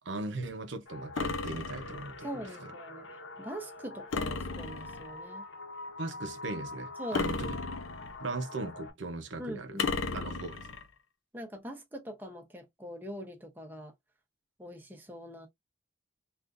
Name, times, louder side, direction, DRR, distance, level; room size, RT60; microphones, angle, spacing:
voice 1, 0.0-2.7 6.0-7.5 8.2-9.8 10.1-10.7, right 2 dB, 65° right, 0.6 m, -38 dB
sound 1, 0.9-8.9, left 2 dB, 70° left, 0.9 m, -45 dB
sound 2, 1.2-2.2 4.1-5.2 7.1-8.3 9.8-10.9, left 4 dB, 90° left, 0.6 m, -34 dB
voice 2, 2.2-3.1 3.4-5.4 7.0-7.3 9.4-10.3 11.3-13.9 14.6-15.5, equal, 10° right, 0.7 m, -42 dB
3.5 x 2.5 x 2.4 m
head